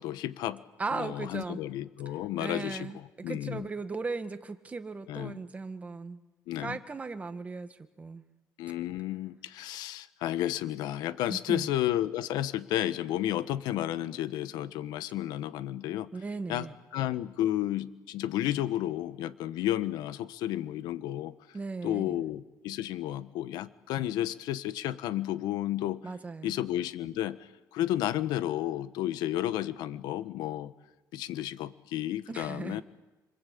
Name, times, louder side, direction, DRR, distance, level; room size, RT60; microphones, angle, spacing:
voice 1, 0.0-0.6 0.9-3.7 5.1-5.4 6.5-6.8 8.6-16.1 16.5-16.7 16.9-21.3 21.8-26.1 26.4-27.4 27.7-30.7 31.1-32.8, left 13 dB, 80° left, 13 dB, 1.4 m, -32 dB
voice 2, 0.8-1.6 2.4-3.0 3.3-6.2 6.6-8.2 11.3-11.7 16.1-16.8 21.5-22.2 26.0-26.6 32.3-32.8, right 4 dB, 20° right, 8 dB, 2.0 m, -37 dB
27.0 x 25.5 x 8.7 m, 1.1 s
cardioid pair, 125°, 7 cm